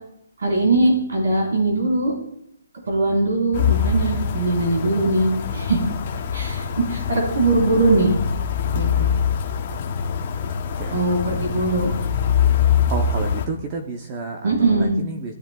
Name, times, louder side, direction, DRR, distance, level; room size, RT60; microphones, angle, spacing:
voice 1, 0.4-2.1 2.9-5.8 6.3-8.1 8.7-9.1 10.9-11.9 14.4-14.9, right 2 dB, 70° right, -2 dB, 4.2 m, -21 dB
sound 1, 3.5-13.5, left 7 dB, 30° left, 0.9 m, -23 dB
voice 2, 10.4-11.5 12.6-15.3, right 3 dB, 20° right, 4 dB, 0.7 m, -32 dB
16.5 x 10.5 x 2.3 m, 0.74 s
hypercardioid pair, 175°, 0 cm